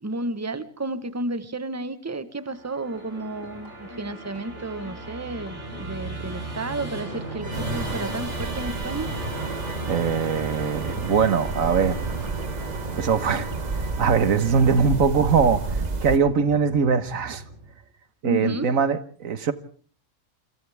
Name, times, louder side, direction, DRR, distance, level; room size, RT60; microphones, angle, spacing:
voice 1, 0.0-9.1 18.2-18.7, right 2 dB, 15° right, 1.2 m, -32 dB
Musical instrument, 2.5-17.8, right 2 dB, 60° right, 4.9 m, -35 dB
sound 1, 2.9-9.2, left 1 dB, 75° left, 4.2 m, -47 dB
sound 2, 7.5-16.2, right 3 dB, 35° right, 1.1 m, -32 dB
voice 2, 9.9-12.0 13.0-13.5 14.0-15.8 16.0-17.4 18.2-19.5, right 6 dB, 85° right, 1.7 m, -21 dB
28.0 x 26.0 x 3.5 m
omnidirectional pair, 1.4 m